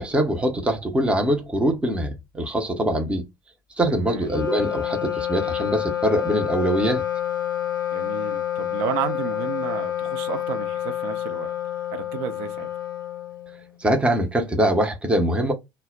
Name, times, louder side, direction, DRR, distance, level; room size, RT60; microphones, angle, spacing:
voice 1, 0.0-3.3 3.8-7.0 13.8-15.5, right 1 dB, 10° right, 0.6 m, -23 dB
voice 2, 3.9-4.3 7.9-11.5 11.9-12.7, right 9 dB, 55° right, 0.5 m, -32 dB
Wind instrument woodwind instrument, 4.2-13.8, left 11 dB, 80° left, 0.4 m, -28 dB
2.1 x 2.0 x 3.7 m
figure-of-eight pair, 70°, 11 cm